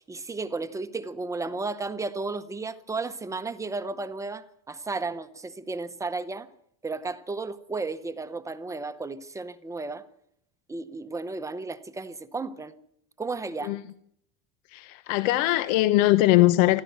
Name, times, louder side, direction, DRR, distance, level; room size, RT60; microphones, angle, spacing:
voice 1, 0.0-6.5 6.8-10.0 10.7-12.7 13.2-13.8, right 3 dB, 10° right, 0.7 m, -33 dB
voice 2, 14.7-16.8, left 16 dB, 80° left, 1.2 m, -21 dB
27.0 x 12.5 x 8.0 m
cardioid pair, 175°, 38 cm